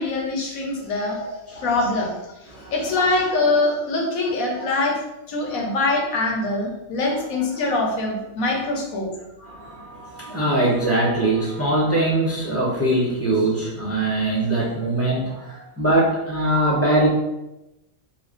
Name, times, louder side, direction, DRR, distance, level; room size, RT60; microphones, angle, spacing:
voice 1, 0.0-1.2 1.5-2.2 2.7-5.0 5.3-9.1, left 2 dB, 80° left, 0 dB, 1.3 m, -23 dB
voice 2, 1.1-2.0 2.5-3.0 5.4-5.7 7.1-7.2 9.4-17.1, right 1 dB, 10° left, -5 dB, 0.9 m, -22 dB
3.4 x 2.3 x 3.8 m, 0.93 s
omnidirectional pair, 1.4 m